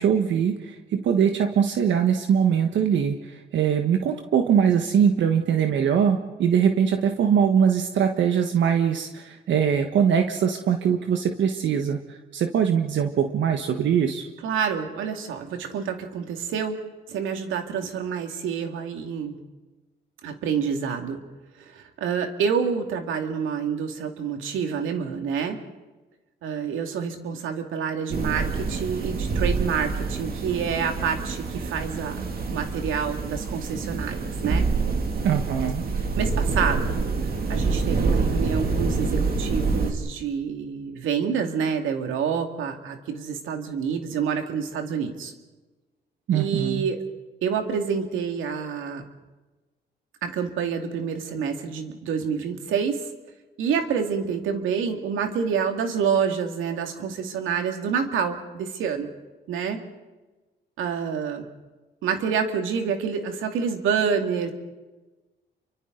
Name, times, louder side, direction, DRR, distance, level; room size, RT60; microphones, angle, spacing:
voice 1, 0.0-12.0 12.3-14.3 35.2-35.8 46.3-46.9, right 8 dB, 70° right, 5 dB, 1.4 m, -22 dB
voice 2, 14.4-16.8 17.1-19.4 20.2-21.2 21.6-25.6 26.4-32.2 32.5-34.7 35.9-37.0 37.5-45.3 46.3-47.0 47.4-49.0 50.2-53.0 53.6-59.1 59.5-59.8 60.8-61.5 62.0-64.5, right 6 dB, 85° right, 5 dB, 2.3 m, -27 dB
sound 1, 28.1-39.9, right 4 dB, 50° right, 2.5 m, -26 dB
29.5 x 24.0 x 4.0 m, 1.2 s
cardioid pair, 90°, 20 cm